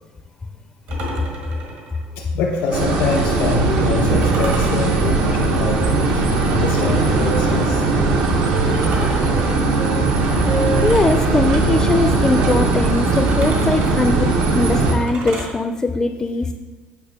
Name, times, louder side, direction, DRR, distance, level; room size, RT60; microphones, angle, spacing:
sound 1, 0.9-3.5 4.2-7.2 8.7-11.2 13.1-15.6, right 2 dB, 65° right, 1.7 m, -34 dB
voice 1, 2.2-7.8, left 5 dB, 85° left, 0 dB, 0.8 m, -25 dB
sound 2, 2.7-14.9, right 3 dB, 80° right, 1.1 m, -19 dB
Wind instrument woodwind instrument, 7.3-10.1 10.4-11.9 12.5-15.0, right 1 dB, 25° right, 0.6 m, -32 dB
voice 2, 10.8-14.3 14.5-16.5, left 3 dB, 15° left, 7 dB, 0.4 m, -20 dB
8.7 x 5.6 x 3.6 m, 1.3 s
cardioid pair, 135°, 3 cm